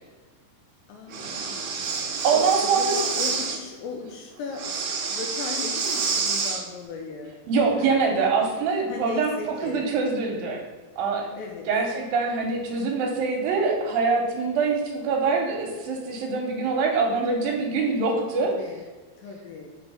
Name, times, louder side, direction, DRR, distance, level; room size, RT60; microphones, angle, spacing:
voice 1, 0.9-4.8 5.1-7.4 7.8-8.6 8.9-9.9 11.4-11.7 18.3-18.8 19.2-19.7, left 5 dB, 80° left, 1 dB, 2.2 m, -37 dB
Breathing, 1.1-3.6 4.5-6.6, right 5 dB, 90° right, 1.7 m, -28 dB
voice 2, 2.2-3.0 7.5-10.6 11.0-11.2 11.7-18.5, right 4 dB, 75° right, 1 dB, 2.4 m, -24 dB
5.1 x 4.5 x 5.4 m, 1.4 s
omnidirectional pair, 4.6 m